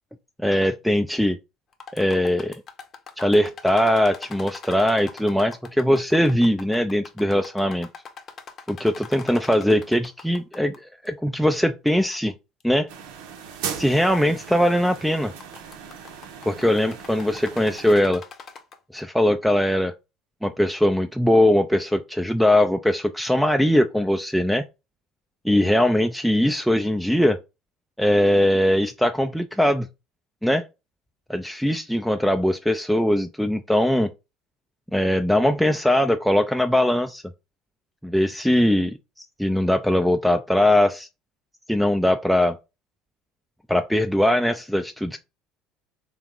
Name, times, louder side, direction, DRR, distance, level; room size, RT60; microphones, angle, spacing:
voice 1, 0.4-1.4 1.9-2.6 3.2-7.9 8.7-12.3 12.6-12.9 13.8-15.3 16.4-18.2 18.9-19.9 20.4-24.6 25.4-27.4 28.0-29.9 30.4-30.7 31.3-34.1 34.9-37.2 38.0-39.0 39.4-41.1 41.7-42.6 43.7-45.2, left 1 dB, ahead, 0.4 m, -21 dB
sound 1, 1.7-10.8 11.0-11.1 11.9-12.0 12.6-12.7 13.8-14.1 14.4-14.7 14.9-19.0, left 6 dB, 45° left, 0.7 m, -42 dB
sound 2, 12.9-17.9, right 7 dB, 80° right, 0.8 m, -38 dB
3.4 x 3.0 x 3.7 m
supercardioid pair, 95°, 0 cm